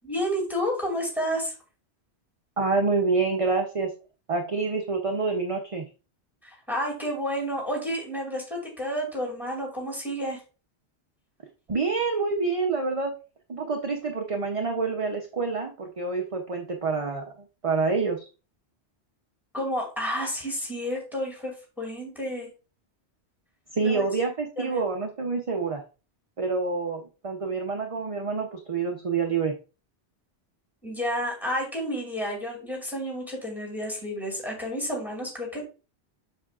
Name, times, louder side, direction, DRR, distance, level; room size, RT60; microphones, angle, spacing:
voice 1, 0.1-1.5 6.4-10.4 19.5-22.5 23.8-24.0 24.6-24.8 30.8-35.7, equal, ahead, -1 dB, 2.5 m, -30 dB
voice 2, 2.6-3.9 4.3-5.9 11.7-13.1 13.5-18.3 23.7-25.8 26.4-29.6, right 4 dB, 35° right, 3 dB, 0.7 m, -27 dB
7.1 x 6.7 x 2.5 m, 0.32 s
omnidirectional pair, 1.2 m